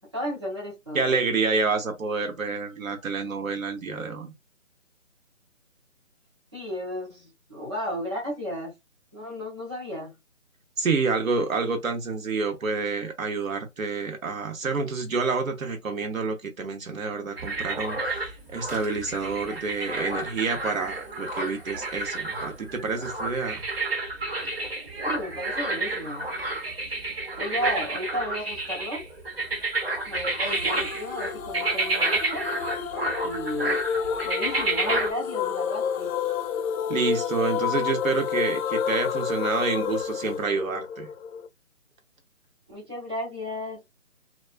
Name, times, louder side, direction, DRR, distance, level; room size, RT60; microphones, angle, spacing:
voice 1, 0.1-1.1 6.5-8.8 9.1-10.1 25.1-26.3 27.4-29.0 30.1-32.5 33.2-33.8 34.2-36.1 42.7-43.8, equal, 20° right, 0.6 m, -33 dB
voice 2, 0.9-4.3 10.8-23.7 36.9-41.1, right 4 dB, 75° right, 1.0 m, -28 dB
sound 1, 17.4-35.1, right 2 dB, 45° right, 0.9 m, -30 dB
sound 2, 30.5-41.5, left 7 dB, 80° left, 0.6 m, -30 dB
2.3 x 2.3 x 2.4 m
hypercardioid pair, 165°, 41 cm